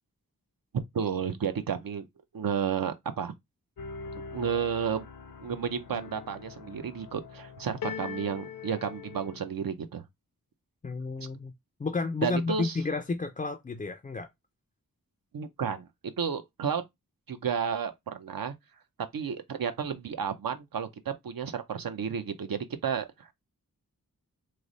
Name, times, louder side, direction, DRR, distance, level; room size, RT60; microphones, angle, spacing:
voice 1, 0.9-2.0 2.3-3.3 4.3-5.1 5.4-10.0 11.2-11.3 12.2-12.8 15.3-16.8 17.3-18.5 19.1-23.3, right 7 dB, 70° right, 0.6 m, -32 dB
sound 1, 3.8-9.5, left 6 dB, 65° left, 0.6 m, -42 dB
voice 2, 10.8-11.5 11.8-14.3, left 3 dB, 25° left, 0.3 m, -31 dB
3.2 x 2.0 x 3.8 m
wide cardioid pair, 70°, 36 cm